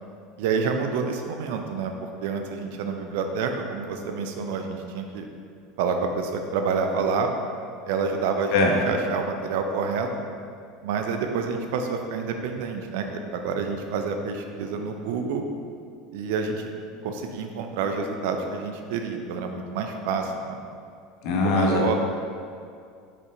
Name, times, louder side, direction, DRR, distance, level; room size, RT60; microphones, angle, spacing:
voice 1, 0.4-5.3 5.8-7.3 7.8-10.1 10.8-15.4 16.1-16.7 17.0-20.6 21.4-21.9, right 5 dB, 70° right, 4 dB, 0.6 m, -28 dB
voice 2, 21.2-22.0, left 3 dB, 60° left, -1 dB, 1.2 m, -21 dB
5.4 x 5.3 x 3.9 m, 2.3 s
hypercardioid pair, 80°, 0 cm